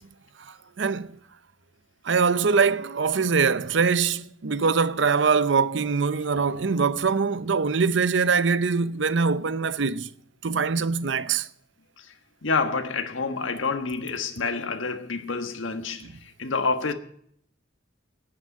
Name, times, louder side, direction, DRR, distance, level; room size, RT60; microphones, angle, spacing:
voice 1, 0.5-1.2 2.0-10.1 10.4-11.5 16.0-16.1, right 5 dB, 65° right, 0.6 m, -23 dB
voice 2, 12.4-16.9, left 4 dB, 85° left, 1.4 m, -28 dB
10.0 x 8.8 x 9.9 m
head